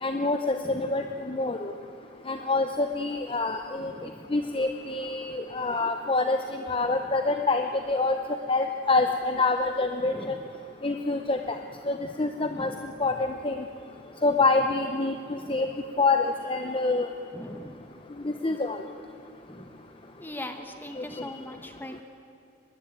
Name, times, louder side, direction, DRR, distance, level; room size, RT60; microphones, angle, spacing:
voice 1, 0.0-1.7 2.3-3.9 4.3-8.2 8.5-10.4 10.8-11.6 11.9-12.7 13.0-13.6 14.2-15.1 15.5-15.7 16.0-17.1 18.2-18.8 21.0-21.1, left 3 dB, 25° left, 6 dB, 0.7 m, -26 dB
voice 2, 0.6-1.1 3.8-4.3 6.9-7.0 10.0-10.4 12.5-12.9 15.3-15.6 17.3-17.9 19.5-19.8 20.2-22.0, left 1 dB, 10° left, 6 dB, 1.1 m, -41 dB
23.5 x 20.5 x 9.1 m, 2.6 s
head